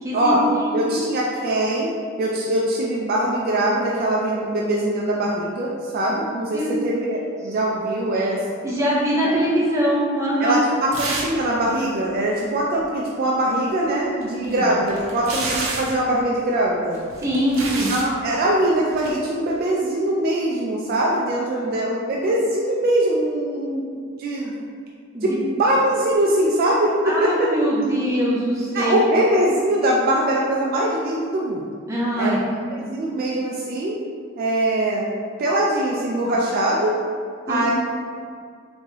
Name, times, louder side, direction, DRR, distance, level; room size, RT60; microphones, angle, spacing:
voice 1, 0.0-1.0 6.5-6.8 8.2-8.3 8.6-10.6 14.4-14.7 17.2-17.9 21.6-21.7 25.1-25.4 27.0-29.1 31.9-32.4 37.5-37.6, equal, 15° right, -6 dB, 0.6 m, -23 dB
voice 2, 0.7-1.9 2.2-8.4 9.2-9.3 10.4-17.0 17.9-24.6 25.2-25.3 25.6-27.5 28.7-31.7 32.2-32.4 32.7-34.0 34.4-35.1 35.4-36.9 37.5-37.7, right 1 dB, 45° right, -3 dB, 0.3 m, -22 dB
sound 1, 10.9-11.5 11.7-11.8 14.2-16.0 16.9-18.1 18.9-19.2, right 3 dB, 85° right, 0.6 m, -29 dB
3.4 x 3.1 x 2.9 m, 2.2 s
head